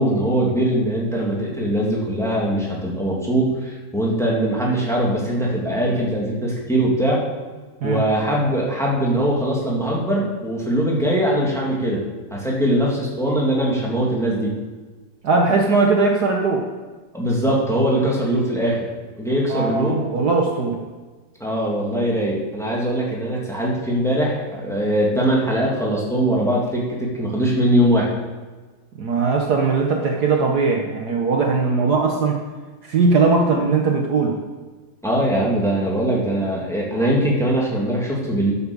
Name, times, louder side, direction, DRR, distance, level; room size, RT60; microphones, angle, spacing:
voice 1, 0.0-7.2 7.8-12.0 12.3-14.5 17.1-18.8 19.2-20.0 21.4-28.1 35.0-38.5, right 1 dB, ahead, -4 dB, 2.4 m, -21 dB
voice 2, 15.2-16.7 19.5-20.8 29.0-32.4 32.8-34.4, right 4 dB, 55° right, 1 dB, 1.5 m, -19 dB
11.0 x 7.1 x 7.0 m, 1.3 s
omnidirectional pair, 2.2 m